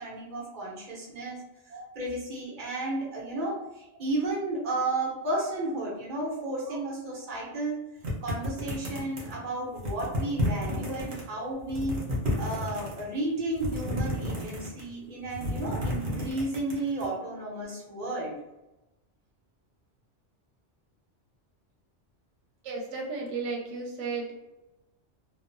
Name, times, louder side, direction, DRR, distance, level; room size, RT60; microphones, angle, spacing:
voice 1, 0.0-1.4 1.9-7.8 8.2-11.9 12.3-18.4, right 2 dB, 45° right, -4 dB, 1.0 m, -33 dB
sound 1, 8.0-9.4 9.8-11.2 11.6-13.0 13.5-14.9 15.2-17.1, left 1 dB, 65° right, 1.1 m, -31 dB
voice 2, 22.6-24.3, right 4 dB, 85° right, -1 dB, 0.9 m, -35 dB
2.9 x 2.0 x 2.6 m, 0.97 s
omnidirectional pair, 1.2 m